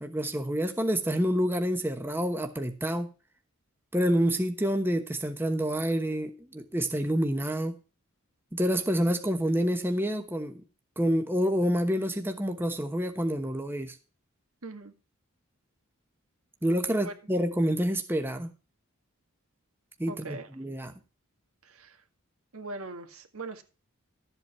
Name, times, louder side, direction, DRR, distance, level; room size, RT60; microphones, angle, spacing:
voice 1, 0.0-3.1 3.9-7.8 8.5-10.6 11.0-14.0 16.6-18.5 20.0-20.9, equal, 10° right, 1.1 m, -28 dB
voice 2, 14.6-14.9 17.0-17.1 20.1-20.5 21.6-22.0 22.5-23.6, right 2 dB, 80° right, 1.9 m, -40 dB
13.0 x 8.1 x 4.4 m
head